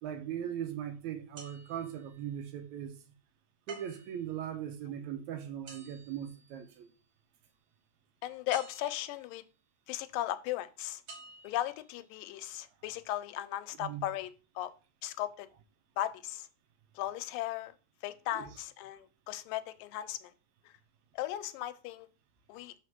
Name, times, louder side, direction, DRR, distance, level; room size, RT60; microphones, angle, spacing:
voice 1, 0.0-3.0 3.7-6.9 13.8-14.1 18.4-18.5, right 9 dB, 80° right, 1.8 m, -39 dB
sound 1, 1.4-2.4 3.7-4.3 5.7-7.0 8.5-9.3 11.1-11.8 12.4-12.5, right 4 dB, 50° right, 1.7 m, -52 dB
voice 2, 8.2-9.4 9.9-11.0 11.4-14.7 15.0-15.5 16.0-16.5 17.0-17.7 18.0-20.3 21.1-22.1 22.5-22.7, left 13 dB, 90° left, 2.2 m, -37 dB
4.7 x 4.2 x 5.8 m
omnidirectional pair, 3.8 m